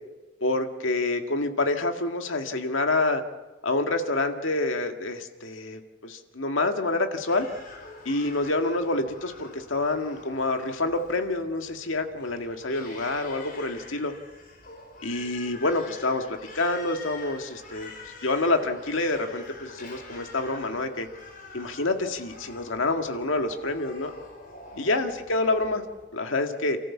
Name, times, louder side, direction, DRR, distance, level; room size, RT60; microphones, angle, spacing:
voice 1, 0.4-3.2 3.6-7.5 8.1-14.1 15.0-17.9 18.2-21.1 21.5-24.1 24.8-25.8 26.1-26.8, left 2 dB, 90° left, 5 dB, 1.9 m, -27 dB
Crying sobbing, 7.3-26.1, left 3 dB, 45° left, 4.5 m, -46 dB
29.0 x 14.0 x 7.3 m, 1.2 s
head